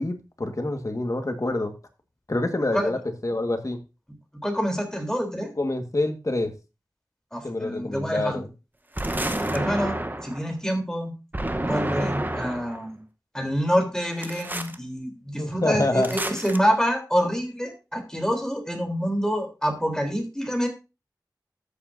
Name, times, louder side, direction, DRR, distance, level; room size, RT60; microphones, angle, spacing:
voice 1, 0.0-1.7 2.3-3.8 5.6-6.5 7.4-8.5 15.4-16.2, left 2 dB, 50° left, 5 dB, 1.7 m, -26 dB
voice 2, 4.4-5.5 7.3-8.4 9.5-10.0 10.2-11.1 11.6-13.0 13.3-20.7, equal, 10° left, 3 dB, 3.7 m, -26 dB
sound 1, 9.0-10.4 11.3-12.8 14.2-14.8 16.0-16.6, right 1 dB, 25° right, 1.1 m, -29 dB
14.0 x 7.4 x 2.7 m, 0.28 s
wide cardioid pair, 55°, 7 cm